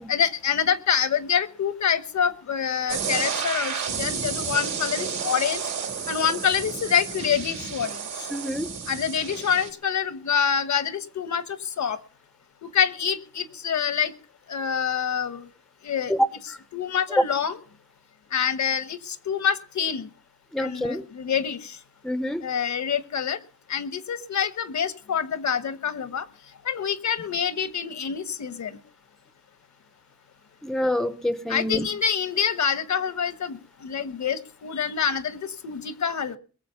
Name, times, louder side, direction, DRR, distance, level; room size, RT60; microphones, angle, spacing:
voice 1, 0.1-5.6 6.1-8.3 8.9-12.0 12.6-14.1 14.5-15.4 15.8-16.1 16.7-17.6 18.3-20.1 20.6-21.8 22.4-23.4 23.7-26.2 26.6-28.7 31.5-36.4, left 7 dB, 70° left, 13 dB, 1.2 m, -26 dB
sound 1, 2.9-9.7, right 6 dB, 70° right, 3.6 m, -31 dB
voice 2, 8.3-8.7 16.1-16.3 17.1-17.2 20.5-21.0 22.0-22.4 30.6-31.9, equal, ahead, 14 dB, 0.7 m, -25 dB
22.0 x 7.5 x 5.6 m, 0.39 s
wide cardioid pair, 155°, 29 cm